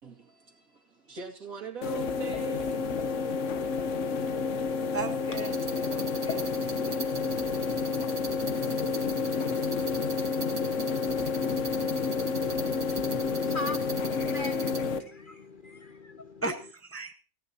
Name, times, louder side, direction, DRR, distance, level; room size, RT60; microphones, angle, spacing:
voice 1, 0.0-3.3, right 6 dB, 75° right, 2.8 m, -43 dB
sound 1, 1.8-15.0, left 5 dB, 65° left, 1.2 m, -30 dB
voice 2, 4.9-6.6 16.4-17.1, right 3 dB, 10° left, 0.8 m, -36 dB
sound 2, 5.4-14.8, right 3 dB, 55° right, 1.7 m, -41 dB
voice 3, 12.5-16.4, left 2 dB, 45° left, 0.8 m, -41 dB
29.0 x 10.5 x 2.8 m
omnidirectional pair, 1.5 m